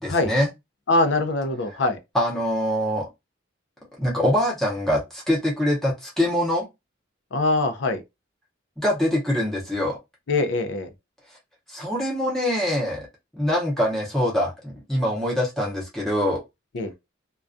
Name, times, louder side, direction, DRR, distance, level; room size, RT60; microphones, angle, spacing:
voice 1, 0.0-0.5 1.7-1.8 2.1-3.1 4.0-6.7 8.8-10.0 11.7-13.1 13.3-16.4, equal, ahead, 0.7 m, -24 dB
voice 2, 0.9-2.0 7.3-8.0 10.3-10.9 16.7-16.9, left 2 dB, 70° left, 0.5 m, -23 dB
2.3 x 2.2 x 2.5 m
head